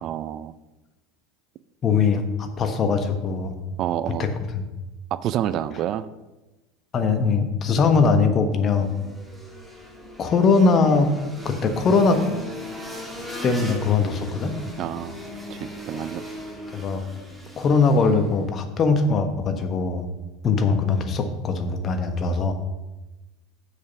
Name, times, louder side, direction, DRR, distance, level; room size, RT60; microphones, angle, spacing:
voice 1, 0.0-0.5 3.8-4.3 5.1-6.1 14.8-15.2 15.5-16.2, right 11 dB, 50° right, 15 dB, 0.4 m, -28 dB
voice 2, 1.8-3.5 4.2-4.3 4.5-4.6 6.9-8.9 10.2-11.1 11.4-12.2 13.4-14.5 16.7-17.0 17.6-20.1 20.4-22.5, left 4 dB, 40° left, 7 dB, 1.2 m, -21 dB
sound 1, 8.7-18.5, left 1 dB, 5° right, 2.0 m, -38 dB
6.7 x 5.5 x 6.9 m, 1.1 s
hypercardioid pair, 80°, 0 cm